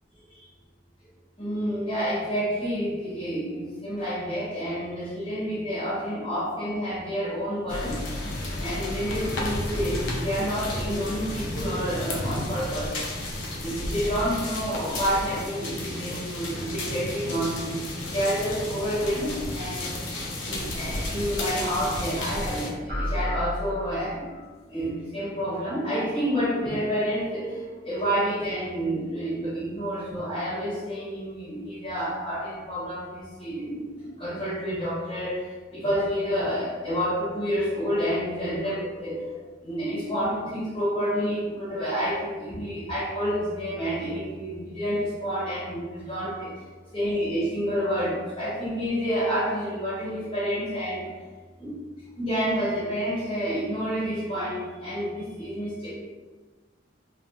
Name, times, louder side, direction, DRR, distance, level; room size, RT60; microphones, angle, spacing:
voice 1, 1.4-8.0 8.6-12.9 13.6-19.9 20.4-24.3 24.7-35.4 35.7-39.4 39.6-46.5 46.9-51.1 51.6-51.8 52.2-55.9, equal, 25° left, -8 dB, 0.6 m, -29 dB
sound 1, 7.7-22.7, left 1 dB, 80° left, 0.5 m, -32 dB
sound 2, 22.9-24.5, left 1 dB, 50° right, 0.6 m, -31 dB
2.3 x 2.2 x 2.6 m, 1.4 s
head